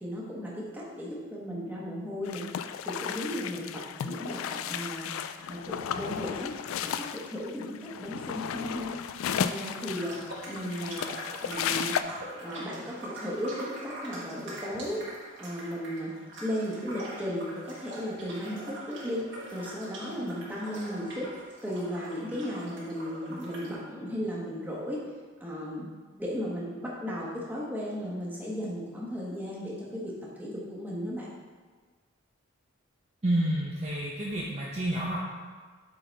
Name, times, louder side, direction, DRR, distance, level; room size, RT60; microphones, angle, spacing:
voice 1, 0.0-2.4 2.8-3.7 4.0-5.1 5.5-6.5 6.8-8.9 9.3-10.2 10.5-11.1 11.4-11.9 12.4-15.0 15.4-16.1 16.4-21.3 21.6-25.0 25.4-25.9 26.2-30.1 30.4-31.3, equal, 10° right, -5 dB, 1.2 m, -35 dB
sound 1, 2.3-12.0, left 8 dB, 80° left, 0.3 m, -34 dB
sound 2, 9.9-23.7, right 1 dB, 60° right, 1.4 m, -43 dB
voice 2, 33.2-35.3, right 1 dB, 30° right, -5 dB, 0.7 m, -29 dB
7.8 x 3.9 x 4.0 m, 1.5 s
head